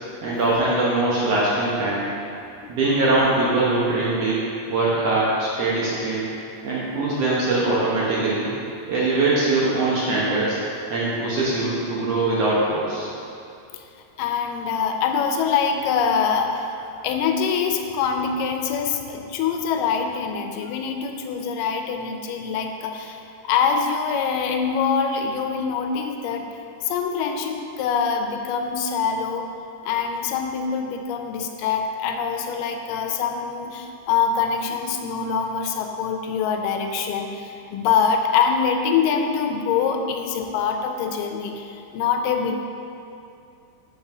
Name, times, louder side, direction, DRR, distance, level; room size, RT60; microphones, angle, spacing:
voice 1, 0.2-2.1 2.7-4.4 4.7-6.2 6.6-8.5 8.9-10.6 10.9-13.1, right 2 dB, 65° right, -7 dB, 1.7 m, -22 dB
voice 2, 14.2-26.5 26.8-29.5 29.8-42.6, left 6 dB, 90° left, 4 dB, 2.2 m, -24 dB
5.6 x 5.2 x 5.9 m, 2.6 s
omnidirectional pair, 3.7 m